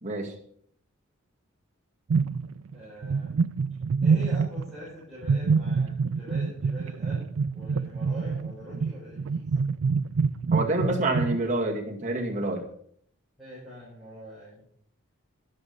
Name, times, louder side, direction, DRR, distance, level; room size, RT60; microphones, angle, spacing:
voice 1, 0.0-0.3 10.5-12.6, right 2 dB, 35° right, 0 dB, 2.1 m, -27 dB
sound 1, 2.1-2.7 3.0-4.8 5.2-11.4, right 5 dB, 75° right, 0.4 m, -26 dB
voice 2, 2.7-3.4 4.0-7.2 7.5-9.5 13.4-14.6, equal, ahead, -10 dB, 6.0 m, -43 dB
11.5 x 11.0 x 5.4 m, 0.63 s
head